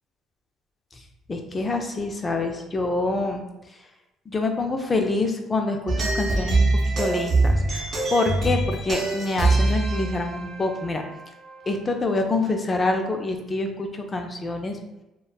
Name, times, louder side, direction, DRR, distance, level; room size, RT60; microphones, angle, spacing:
voice 1, 1.3-3.4 4.3-11.0 11.7-14.8, left 2 dB, 25° left, 4 dB, 0.4 m, -26 dB
sound 1, 5.9-11.7, right 2 dB, 45° right, 0.8 m, -24 dB
3.0 x 2.0 x 2.2 m, 0.98 s
cardioid pair, 90°, 0 cm